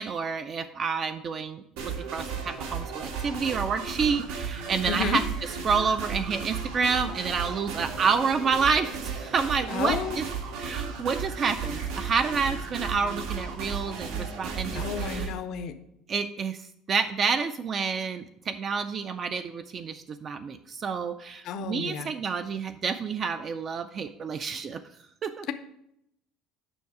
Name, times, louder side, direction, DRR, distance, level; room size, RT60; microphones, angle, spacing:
voice 1, 0.0-5.2 5.6-10.2 10.6-15.3 16.1-24.8 25.2-25.5, right 5 dB, 25° right, 9 dB, 0.3 m, -29 dB
sound 1, 1.8-15.3, right 5 dB, 90° right, 1.5 m, -34 dB
voice 2, 4.9-5.2 9.7-10.2 14.7-15.7 21.4-22.1, left 7 dB, 45° left, 9 dB, 0.5 m, -31 dB
7.0 x 5.6 x 4.7 m, 0.76 s
cardioid pair, 170°, 0 cm